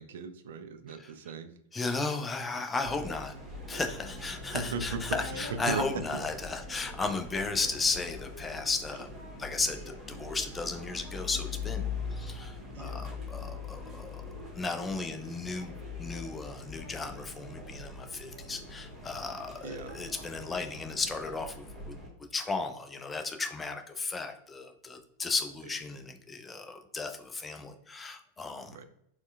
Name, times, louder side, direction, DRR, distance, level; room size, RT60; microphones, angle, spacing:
voice 1, 0.0-1.5 4.5-6.2 12.7-13.1 19.6-20.0 28.7-28.8, right 5 dB, 60° right, 9 dB, 0.4 m, -37 dB
voice 2, 1.7-3.3 3.7-9.1 9.4-9.8 10.1-11.8 12.1-22.0 22.3-28.8, left 3 dB, 15° left, 6 dB, 0.4 m, -35 dB
sound 1, 2.8-22.1, left 4 dB, 10° right, 1.3 m, -42 dB
4.2 x 2.2 x 2.3 m, 0.73 s
figure-of-eight pair, 90°, 0 cm